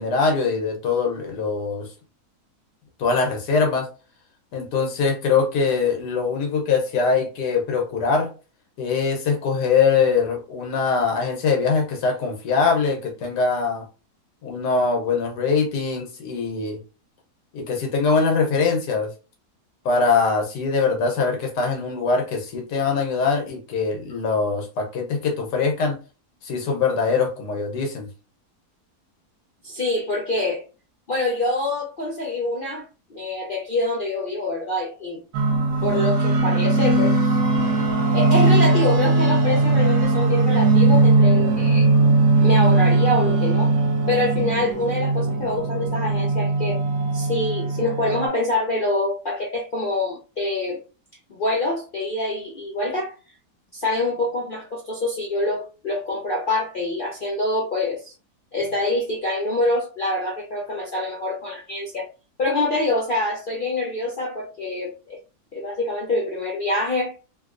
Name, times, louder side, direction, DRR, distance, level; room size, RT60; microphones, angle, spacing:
voice 1, 0.0-1.9 3.0-3.9 4.5-8.3 8.8-13.8 14.4-16.8 17.5-19.1 19.8-26.0 26.4-28.1, left 4 dB, 85° left, 1.4 m, -22 dB
voice 2, 29.6-30.6 31.1-35.2 35.8-37.2 38.1-41.9 42.4-43.7 44.1-46.8 47.1-50.8 51.3-53.1 53.7-58.1 58.5-62.1 62.4-65.2 65.5-67.1, left 2 dB, 60° left, 0.5 m, -25 dB
sound 1, 35.3-48.3, right 3 dB, 75° right, 1.2 m, -19 dB
3.1 x 3.0 x 2.5 m
omnidirectional pair, 1.7 m